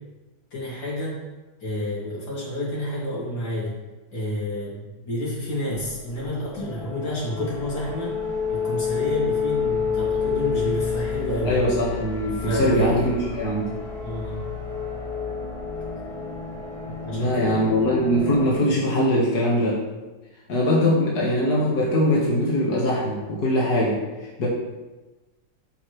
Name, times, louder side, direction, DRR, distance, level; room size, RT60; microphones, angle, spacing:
voice 1, 0.5-1.2 1.6-3.7 4.1-8.1 8.5-11.6 12.4-13.0 14.0-14.4 17.0-17.6, left 1 dB, 85° left, -6 dB, 3.5 m, -29 dB
sound 1, 5.8-18.6, left 5 dB, ahead, 2.6 m, -29 dB
voice 2, 11.4-13.7 17.1-19.8 20.5-24.0 24.4-24.5, equal, 60° left, -5 dB, 2.2 m, -22 dB
14.0 x 5.9 x 3.3 m, 1.1 s
omnidirectional pair, 2.0 m